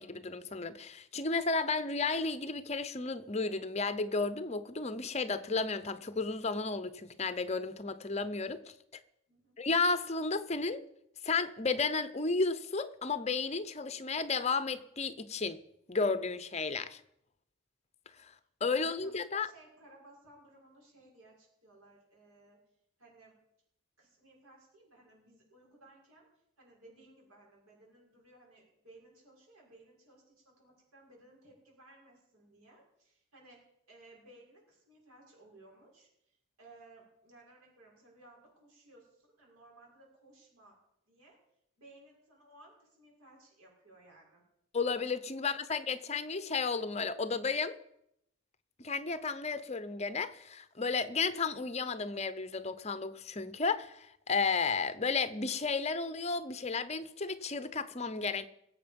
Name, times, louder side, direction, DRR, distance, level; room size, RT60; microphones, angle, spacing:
voice 1, 0.0-8.7 9.6-10.8 11.2-15.6 15.9-17.0 18.2-18.3 18.6-19.5 44.7-47.8 48.8-58.5, left 4 dB, 30° left, 0.7 m, -33 dB
voice 2, 9.3-9.6 18.7-19.1 19.4-22.6 23.0-23.4 24.0-26.3 26.6-40.8 41.1-41.4 41.8-44.4 45.4-45.5, right 2 dB, 85° right, 6.2 m, -59 dB
21.0 x 7.9 x 5.3 m
head